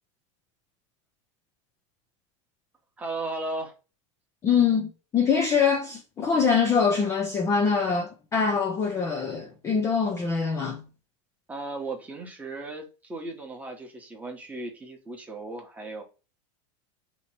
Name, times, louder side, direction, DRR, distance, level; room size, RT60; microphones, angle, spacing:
voice 1, 3.0-3.7 11.5-16.0, right 2 dB, 10° right, 0.9 m, -36 dB
voice 2, 4.4-10.8, left 6 dB, 15° left, 0.5 m, -24 dB
3.0 x 2.8 x 4.2 m
supercardioid pair, 150°, 17 cm